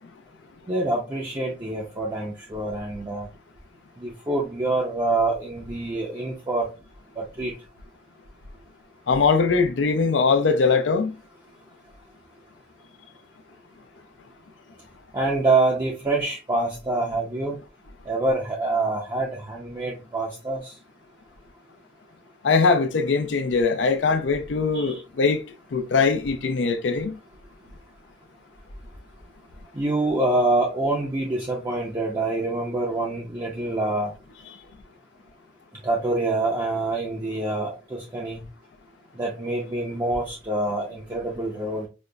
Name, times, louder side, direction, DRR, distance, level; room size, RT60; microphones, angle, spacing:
voice 1, 0.7-3.3 4.0-6.7 7.2-7.5 15.1-17.6 18.1-20.7 24.7-25.0 29.7-34.1 35.8-38.4 39.2-41.9, right 2 dB, 20° right, 0.5 m, -26 dB
voice 2, 9.1-11.1 22.4-25.4 25.7-27.1, left 4 dB, 75° left, 0.5 m, -21 dB
5.1 x 2.0 x 2.2 m
head